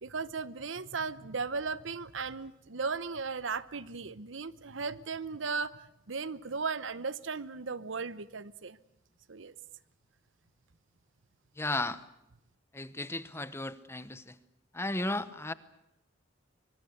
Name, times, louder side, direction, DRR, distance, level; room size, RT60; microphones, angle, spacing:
voice 1, 0.0-5.8 6.1-8.8 9.3-9.5, right 4 dB, 85° right, 16 dB, 1.0 m, -36 dB
voice 2, 11.6-12.0 12.7-14.4 14.7-15.5, left 2 dB, 15° left, 14 dB, 1.0 m, -34 dB
24.5 x 22.0 x 8.2 m, 0.82 s
head